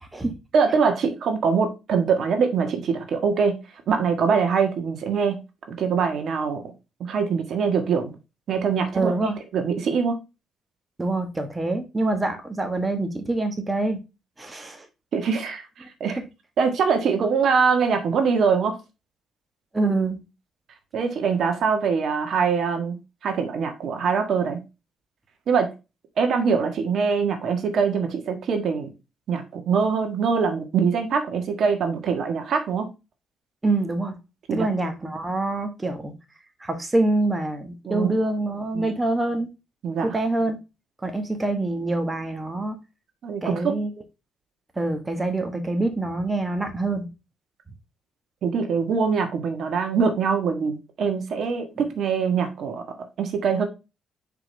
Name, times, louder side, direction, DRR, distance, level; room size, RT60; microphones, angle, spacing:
voice 1, 0.0-0.4 8.9-9.4 11.0-14.0 14.4-14.9 16.1-16.2 19.7-20.2 33.6-34.1 34.5-36.1 36.6-39.5 40.0-40.6 41.0-42.8 43.4-43.9 44.7-47.1, right 2 dB, 20° right, 1.3 m, -25 dB
voice 2, 0.5-3.6 3.9-5.4 5.7-6.6 7.0-8.1 8.5-9.1 9.5-10.1 15.1-16.2 16.6-18.8 20.9-23.0 23.2-24.6 25.5-25.7 26.2-28.9 29.3-32.9 34.5-34.7 37.9-38.1 38.7-38.9 39.8-40.1 43.2-43.7 48.4-52.8 53.2-53.6, right 5 dB, 65° right, 1.5 m, -23 dB
6.0 x 5.0 x 3.3 m
cardioid pair, 90°, 0 cm